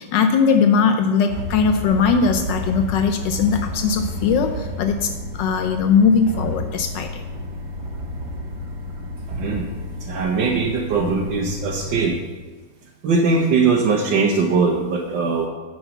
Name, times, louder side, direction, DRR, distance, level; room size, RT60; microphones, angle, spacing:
voice 1, 0.0-7.2, left 5 dB, 80° left, 6 dB, 1.3 m, -19 dB
sound 1, 1.3-12.1, left 1 dB, 70° right, 1.7 m, -31 dB
voice 2, 9.4-12.2 13.0-15.5, right 4 dB, 85° right, -2 dB, 1.7 m, -20 dB
9.0 x 6.4 x 7.1 m, 1.3 s
omnidirectional pair, 2.0 m